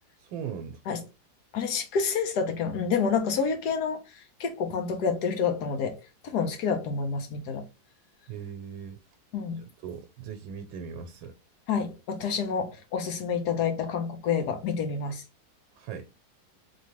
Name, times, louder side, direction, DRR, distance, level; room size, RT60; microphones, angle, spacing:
voice 1, 0.2-0.8 8.3-9.0 9.8-11.3 15.8-16.1, right 7 dB, 85° right, 1.4 m, -39 dB
voice 2, 1.5-7.6 9.3-9.6 11.7-15.2, left 6 dB, 60° left, 1.3 m, -28 dB
4.3 x 3.0 x 3.0 m
omnidirectional pair, 2.1 m